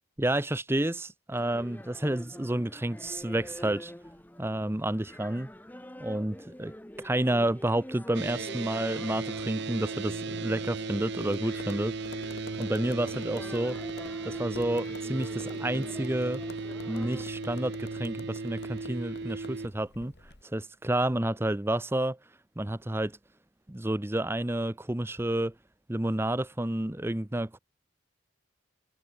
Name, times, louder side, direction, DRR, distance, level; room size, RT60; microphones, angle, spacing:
voice 1, 0.2-3.9 4.4-5.5 6.0-6.7 7.0-12.1 12.6-13.8 14.2-16.4 16.9-20.1 20.4-22.2 22.6-23.2 23.7-25.5 25.9-27.6, right 1 dB, 10° right, 0.6 m, -30 dB
sound 1, 1.3-17.2, left 1 dB, 10° left, 1.0 m, -47 dB
sound 2, 8.1-19.7, right 3 dB, 55° right, 0.7 m, -36 dB
Tap, 11.1-20.4, left 2 dB, 50° left, 2.3 m, -49 dB
head